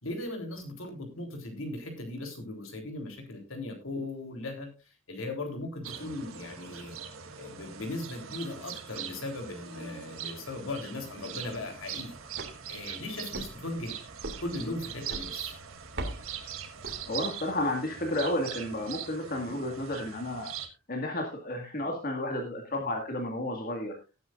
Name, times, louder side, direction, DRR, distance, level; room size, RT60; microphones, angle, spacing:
voice 1, 0.0-7.0 7.4-12.1 12.7-14.0 14.4-15.5 21.8-21.9, left 2 dB, 70° left, 3 dB, 3.7 m, -38 dB
sound 1, 5.8-20.7, right 8 dB, 75° right, 1.6 m, -42 dB
sound 2, 11.2-17.5, right 1 dB, 55° right, 2.3 m, -43 dB
voice 2, 17.1-20.5 20.9-24.0, left 1 dB, 45° left, 1 dB, 2.0 m, -32 dB
18.5 x 9.3 x 2.5 m, 0.30 s
head